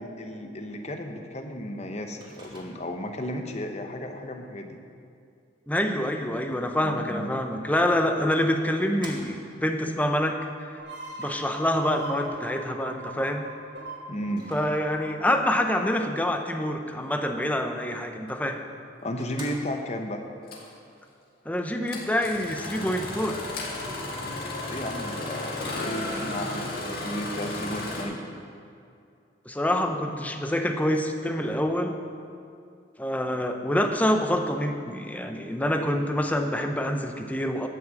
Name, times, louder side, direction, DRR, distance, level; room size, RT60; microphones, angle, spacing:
voice 1, 0.0-4.8 6.8-7.3 14.1-14.5 19.0-20.2 24.7-28.2, left 1 dB, 35° left, 5 dB, 0.9 m, -34 dB
Microwave oven, 2.2-3.1 7.5-7.6 8.3-9.7 14.3-15.2 18.3-18.4 18.8-18.9 19.2-20.1, right 2 dB, 25° right, 1.7 m, -47 dB
voice 2, 5.7-10.7 11.2-13.5 14.5-18.6 21.5-23.4 29.5-32.0 33.0-37.7, left 1 dB, 10° left, 4 dB, 0.7 m, -26 dB
sound 1, 10.8-16.2, right 2 dB, 85° right, 3.2 m, -41 dB
Engine starting, 19.2-19.3 20.5-20.7 21.9-28.0, left 2 dB, 55° left, 2.1 m, -34 dB
11.5 x 6.1 x 7.6 m, 2.4 s
head